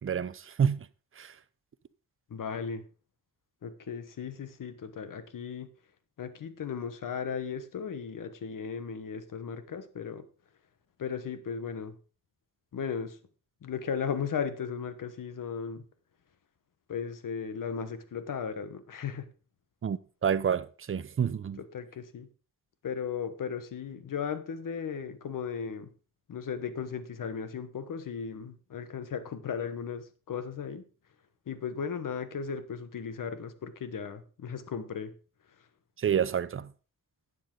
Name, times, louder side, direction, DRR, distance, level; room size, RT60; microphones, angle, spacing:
voice 1, 0.0-0.9 1.2-1.3 19.8-21.6 36.0-36.7, right 8 dB, 40° right, 0.6 m, -29 dB
voice 2, 2.3-2.8 3.6-5.7 6.2-10.3 11.0-12.0 12.7-13.2 13.6-15.9 16.9-19.3 21.6-22.3 22.8-25.9 26.3-30.8 31.5-35.1, left 6 dB, 65° left, 1.2 m, -36 dB
12.0 x 8.4 x 3.8 m
wide cardioid pair, 115°, 34 cm